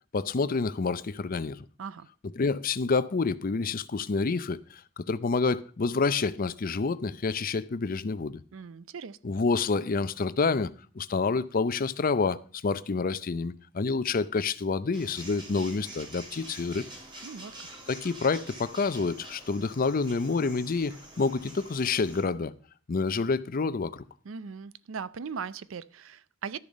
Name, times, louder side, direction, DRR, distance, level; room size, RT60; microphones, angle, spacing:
voice 1, 0.1-1.6 2.4-8.4 9.2-16.8 17.9-22.5 22.9-24.0, left 4 dB, 45° left, 0.5 m, -28 dB
voice 2, 8.5-9.2 17.2-17.5 24.3-26.6, right 6 dB, 75° right, 0.5 m, -39 dB
sound 1, 14.9-22.2, right 1 dB, 25° right, 3.0 m, -46 dB
12.0 x 6.9 x 5.2 m
head